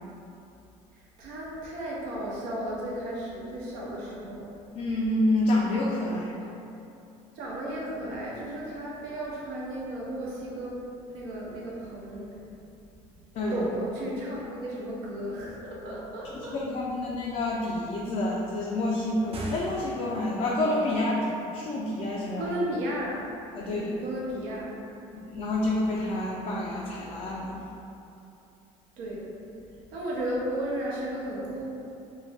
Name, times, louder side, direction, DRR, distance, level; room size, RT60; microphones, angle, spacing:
voice 1, 0.9-4.5 7.4-10.8 11.1-12.3 13.5-16.6 22.4-23.3 23.6-24.7 29.0-29.2 29.9-31.6, right 1 dB, 70° right, -5 dB, 0.8 m, -34 dB
voice 2, 4.8-6.5 13.3-13.7 16.3-22.5 23.5-23.9 25.1-27.6, left 1 dB, 45° left, -4 dB, 0.4 m, -28 dB
sound 1, 19.2-20.5, right 1 dB, 35° right, 0.5 m, -39 dB
2.6 x 2.2 x 3.3 m, 2.8 s
hypercardioid pair, 70°, 17 cm